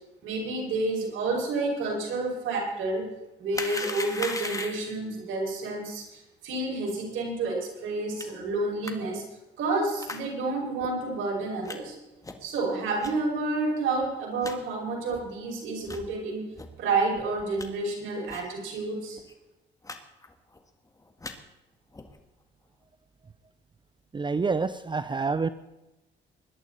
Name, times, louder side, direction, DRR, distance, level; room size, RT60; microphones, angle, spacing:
voice 1, 0.2-3.1 3.4-9.2 9.6-12.0 12.4-16.4 16.8-19.2, right 3 dB, 80° right, -2 dB, 5.9 m, -29 dB
sound 1, 3.5-5.0 8.2-8.3 8.8-8.9 10.0-10.2 10.8-10.9 11.7-11.8 12.2-12.5 13.0-13.1 13.7-13.8 14.0-14.1 14.4-14.6 15.1-15.2 15.8-16.1 16.6-16.7 17.1-17.7 18.3-18.5 18.8-18.9 19.1-19.3 19.8-20.0 20.2-20.6 21.0-21.3 21.9-22.2, left 2 dB, 15° left, 1.7 m, -37 dB
voice 2, 24.1-25.5, right 4 dB, 25° right, 13 dB, 0.6 m, -27 dB
21.5 x 11.0 x 4.1 m, 0.99 s
cardioid pair, 90°, 20 cm